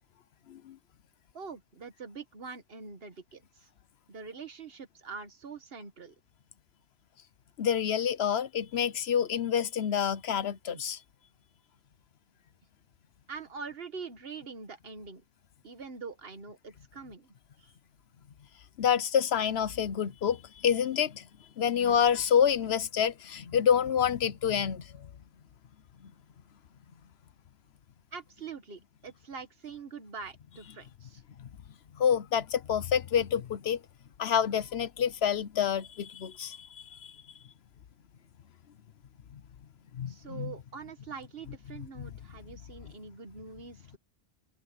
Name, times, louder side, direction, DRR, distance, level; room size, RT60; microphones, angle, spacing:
voice 1, 1.3-3.7 4.1-6.1 10.7-10.8 13.3-15.2 15.6-17.7 28.1-31.2 40.1-44.0, right 5 dB, 70° right, 1.7 m, -44 dB
voice 2, 7.6-11.0 18.8-21.3 21.6-25.1 26.0-26.1 31.4-31.5 31.9-33.8 34.2-37.2 39.9-40.5 42.5-42.6, left 8 dB, 80° left, 1.1 m, -28 dB
omnidirectional pair, 1.0 m